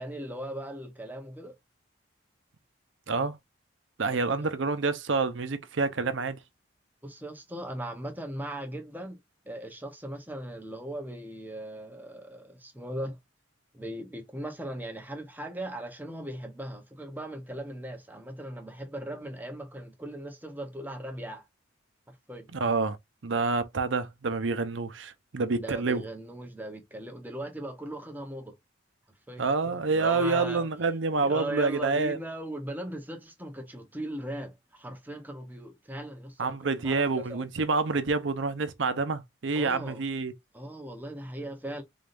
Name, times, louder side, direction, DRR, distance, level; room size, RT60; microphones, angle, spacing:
voice 1, 0.0-1.6 4.1-4.5 7.0-9.2 9.4-13.2 13.7-21.4 22.1-22.5 25.5-28.5 29.3-29.5 29.9-30.7 31.2-37.4 39.5-40.0 40.5-41.8, right 1 dB, 10° right, 0.9 m, -38 dB
voice 2, 4.0-6.4 22.5-23.0 23.2-26.0 29.4-32.2 36.4-40.3, right 4 dB, 80° right, 0.7 m, -28 dB
3.9 x 3.6 x 2.5 m
head